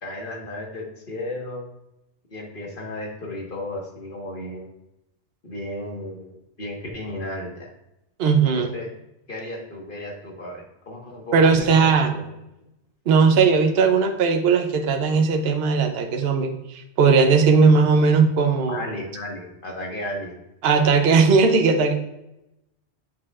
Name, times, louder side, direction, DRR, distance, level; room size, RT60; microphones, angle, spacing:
voice 1, 0.0-1.7 2.3-4.7 5.4-7.7 8.5-8.9 9.3-11.7 12.1-12.2 18.7-20.4, left 1 dB, 50° left, 0 dB, 1.6 m, -34 dB
voice 2, 8.2-8.7 11.3-12.1 13.1-18.8 20.6-21.9, right 5 dB, 65° right, 5 dB, 0.9 m, -18 dB
7.4 x 6.2 x 2.4 m, 0.87 s
omnidirectional pair, 1.1 m